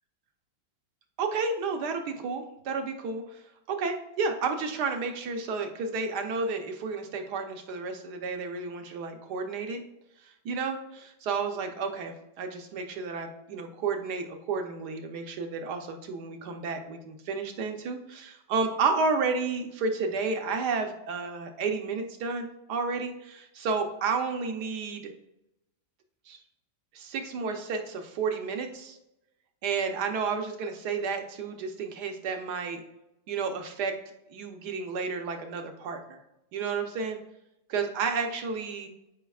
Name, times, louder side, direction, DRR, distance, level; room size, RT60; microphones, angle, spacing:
voice 1, 1.2-3.4 3.7-9.8 10.2-25.1 26.3-26.4 26.9-29.0 29.6-32.8 33.3-33.9 34.3-36.2 36.5-37.2 37.7-38.9, right 4 dB, 70° right, 5 dB, 1.4 m, -31 dB
12.5 x 5.1 x 2.4 m, 0.89 s
omnidirectional pair, 1.8 m